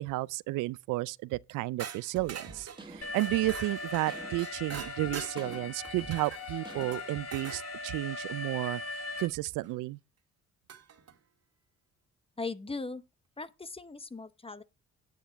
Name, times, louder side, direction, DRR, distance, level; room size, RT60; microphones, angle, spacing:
voice 1, 0.0-8.8 9.2-10.0, right 19 dB, 80° right, 0.5 m, -32 dB
sound 1, 1.8-7.6 9.6-9.7 10.7-11.1, right 8 dB, 55° right, 1.8 m, -44 dB
sound 2, 2.1-7.3, right 2 dB, 15° right, 2.0 m, -49 dB
Alarm, 3.0-9.3, left 3 dB, 55° left, 2.0 m, -40 dB
voice 2, 12.4-13.0 13.4-14.6, left 3 dB, 20° left, 0.9 m, -38 dB
10.5 x 8.0 x 4.5 m
supercardioid pair, 70°, 31 cm